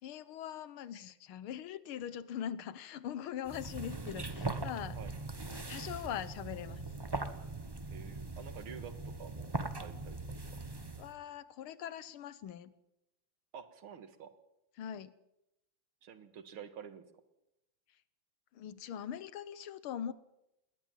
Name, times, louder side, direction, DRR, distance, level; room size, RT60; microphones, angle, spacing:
voice 1, 0.0-5.0 5.5-6.9 11.0-12.7 14.8-15.1 18.5-20.1, left 9 dB, 85° left, 17 dB, 1.8 m, -42 dB
sound 1, 3.4-11.1, right 3 dB, 20° right, 0.7 m, -40 dB
voice 2, 7.9-8.9 9.2-9.5 9.8-10.6 13.5-14.3 16.0-17.0, right 7 dB, 85° right, 11 dB, 2.5 m, -49 dB
21.0 x 18.5 x 7.5 m, 0.85 s
omnidirectional pair, 2.3 m